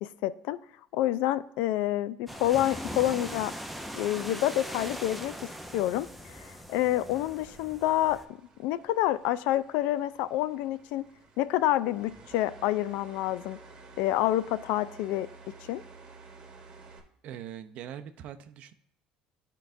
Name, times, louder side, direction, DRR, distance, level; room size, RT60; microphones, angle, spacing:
voice 1, 0.0-0.6 0.9-3.5 4.0-11.0 11.4-13.6 14.0-15.8, left 14 dB, 80° left, 0.3 m, -28 dB
sound 1, 2.3-8.3, equal, ahead, 0.5 m, -40 dB
sound 2, 7.5-17.0, right 4 dB, 35° right, 1.1 m, -52 dB
voice 2, 17.2-18.7, right 9 dB, 55° right, 0.5 m, -42 dB
12.0 x 4.6 x 2.5 m
cardioid pair, 145°, 3 cm